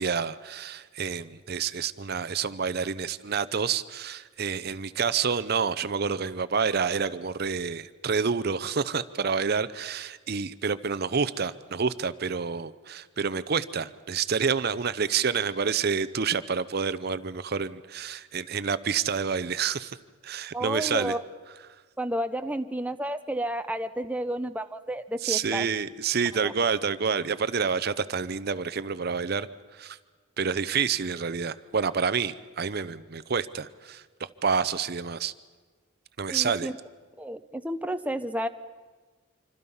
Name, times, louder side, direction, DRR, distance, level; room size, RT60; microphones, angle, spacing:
voice 1, 0.0-20.0 20.2-21.1 25.2-29.5 29.7-30.0 30.4-35.3 36.2-36.7, right 6 dB, 50° right, 14 dB, 0.6 m, -28 dB
voice 2, 20.5-21.2 22.0-25.7 26.4-26.5 36.3-36.7 37.2-38.5, right 1 dB, 5° right, 8 dB, 0.6 m, -31 dB
26.0 x 25.5 x 5.6 m, 1.4 s
head